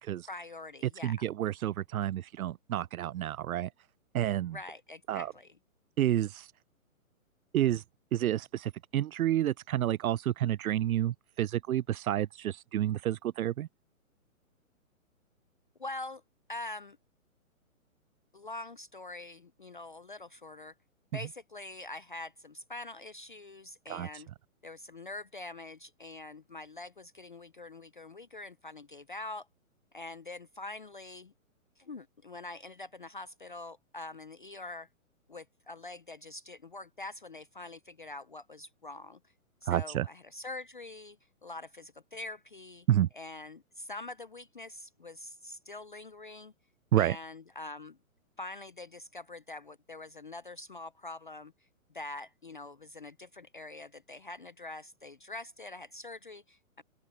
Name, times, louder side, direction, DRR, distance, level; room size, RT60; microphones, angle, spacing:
voice 1, 0.2-1.3 4.5-5.5 15.8-16.2 16.5-17.0 18.3-20.7 21.1-24.3 24.6-29.5 29.9-31.3 31.8-34.9 35.3-39.2 39.6-42.9 43.1-46.5 47.0-48.0 48.4-51.5 51.9-56.8, left 2 dB, 40° left, 0.4 m, -44 dB
voice 2, 1.0-3.7 4.1-4.6 5.1-5.3 6.0-6.5 7.5-7.8 8.1-13.7 23.9-24.2 39.7-40.1 42.9-43.1 46.9-47.2, right 12 dB, 80° right, 0.5 m, -29 dB
open air
hypercardioid pair, 170°, 42 cm